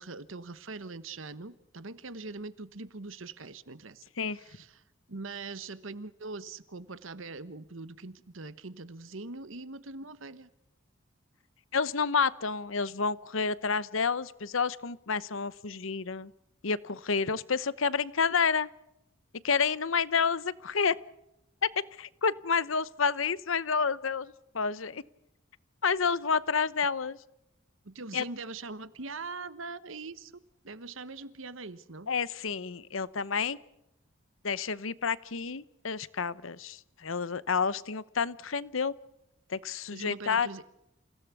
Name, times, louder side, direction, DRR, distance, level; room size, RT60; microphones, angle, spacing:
voice 1, 0.0-4.0 4.3-4.8 5.1-10.5 27.8-30.3 30.6-32.1 39.9-40.6, right 3 dB, 75° right, 15 dB, 1.3 m, -42 dB
voice 2, 11.7-16.3 16.6-18.7 19.4-21.0 22.0-25.0 25.8-27.2 28.1-28.2 32.1-33.6 34.4-38.9 39.5-40.5, left 5 dB, 80° left, 18 dB, 0.9 m, -29 dB
28.5 x 17.0 x 8.3 m, 0.84 s
head